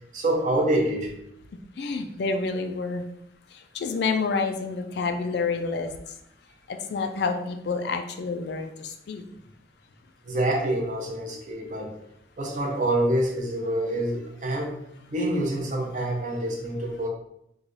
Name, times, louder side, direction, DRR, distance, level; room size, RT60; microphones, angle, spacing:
voice 1, 0.1-1.1 10.2-11.9 12.4-14.8 15.1-17.1, right 1 dB, 40° right, 0 dB, 0.6 m, -26 dB
voice 2, 1.8-3.1 3.5-6.1 6.7-9.2, left 4 dB, 65° left, 7 dB, 0.4 m, -29 dB
3.1 x 2.3 x 3.8 m, 0.77 s
head